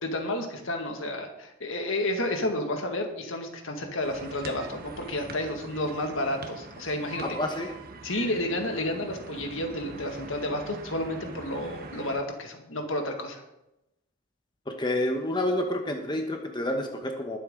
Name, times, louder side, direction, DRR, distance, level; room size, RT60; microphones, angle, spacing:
voice 1, 0.0-7.3 8.0-13.4, left 1 dB, 70° left, 4 dB, 2.0 m, -31 dB
sound 1, 4.0-12.2, right 3 dB, 50° right, 1.3 m, -43 dB
voice 2, 7.2-7.7 14.7-17.4, left 1 dB, 20° left, 3 dB, 1.1 m, -29 dB
21.0 x 7.9 x 3.8 m, 0.89 s
head